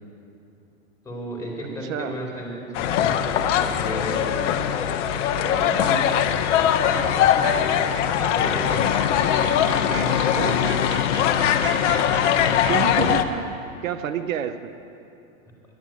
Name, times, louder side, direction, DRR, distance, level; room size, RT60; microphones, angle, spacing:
voice 1, 1.0-4.6 5.3-5.9 6.8-7.0 7.5-8.9 9.7-10.8, equal, 10° left, -3 dB, 4.1 m, -34 dB
sound 1, 2.7-13.2, left 9 dB, 60° left, 1.0 m, -21 dB
voice 2, 5.9-6.4 10.4-10.6 12.6-13.5 13.8-14.7, right 8 dB, 75° right, 11 dB, 0.8 m, -29 dB
sound 2, 6.7-12.7, right 5 dB, 30° right, 1.2 m, -38 dB
11.0 x 11.0 x 9.2 m, 2.7 s
hypercardioid pair, 120°, 41 cm